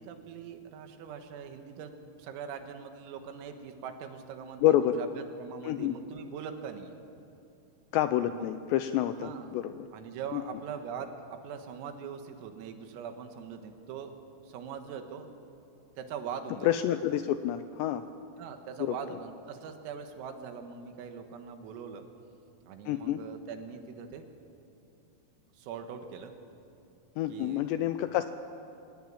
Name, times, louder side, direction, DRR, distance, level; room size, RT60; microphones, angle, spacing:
voice 1, 0.0-1.9 2.2-6.9 8.2-8.5 9.2-9.5 9.9-14.1 14.4-15.3 16.0-16.7 18.4-22.1 22.6-24.3 25.5-26.3 27.3-27.6, right 7 dB, 90° right, 6 dB, 4.3 m, -42 dB
voice 2, 4.6-5.0 5.6-6.0 7.9-9.7 10.3-10.4 16.6-18.0 18.8-19.0 22.9-23.2 27.2-28.3, left 12 dB, 90° left, 10 dB, 2.4 m, -28 dB
25.5 x 20.0 x 8.8 m, 2.7 s
omnidirectional pair, 5.8 m